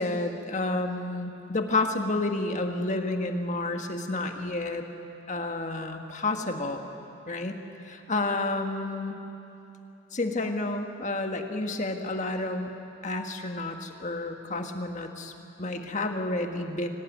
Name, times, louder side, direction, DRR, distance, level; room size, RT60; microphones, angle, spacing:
voice 1, 0.0-4.8 5.3-6.8 7.3-9.2 10.1-12.7 13.0-15.3 15.6-16.9, left 2 dB, 35° left, 4 dB, 1.6 m, -30 dB
25.0 x 17.5 x 9.4 m, 2.8 s
head